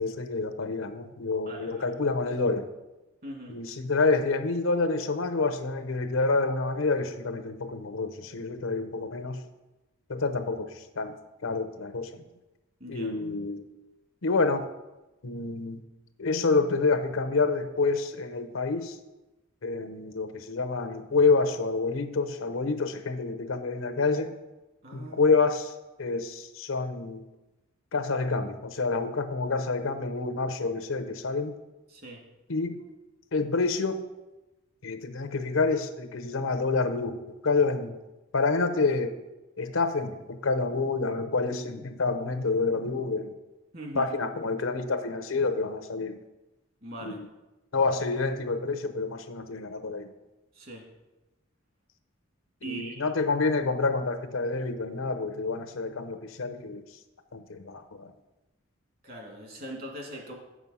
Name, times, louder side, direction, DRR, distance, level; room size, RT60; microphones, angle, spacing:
voice 1, 0.0-2.7 3.5-9.4 10.1-11.2 11.4-12.1 12.9-13.6 14.2-14.6 15.2-15.8 16.2-19.0 19.6-24.3 24.9-25.7 26.0-27.2 27.9-31.5 32.5-32.8 33.3-34.0 34.8-37.2 37.4-37.9 38.3-39.1 39.6-43.3 43.9-46.2 47.0-47.3 47.7-50.1 52.6-56.8 57.3-58.1, left 3 dB, 85° left, 9 dB, 0.8 m, -28 dB
voice 2, 1.5-1.8 3.2-3.6 12.8-13.1 24.8-25.3 31.9-32.2 43.7-44.1 46.8-47.2 50.6-50.8 52.6-53.1 59.0-60.3, right 1 dB, 50° right, 0 dB, 1.9 m, -41 dB
8.0 x 6.2 x 5.5 m, 1.0 s
head